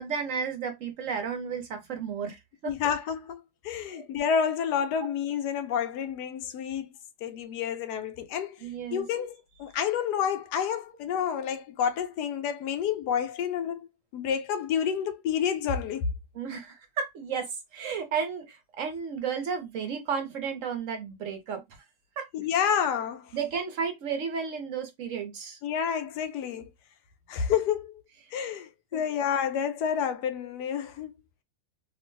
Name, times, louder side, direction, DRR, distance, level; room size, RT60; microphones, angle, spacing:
voice 1, 0.0-2.7 3.9-4.1 8.6-9.2 16.3-21.6 22.2-22.3 23.3-25.6 28.9-29.0, right 6 dB, 60° right, 0.9 m, -33 dB
voice 2, 2.6-6.9 7.2-8.5 8.9-16.1 22.3-23.3 25.6-26.7 27.3-28.0 28.3-31.1, left 8 dB, 85° left, 1.2 m, -29 dB
3.0 x 2.1 x 3.1 m
omnidirectional pair, 1.7 m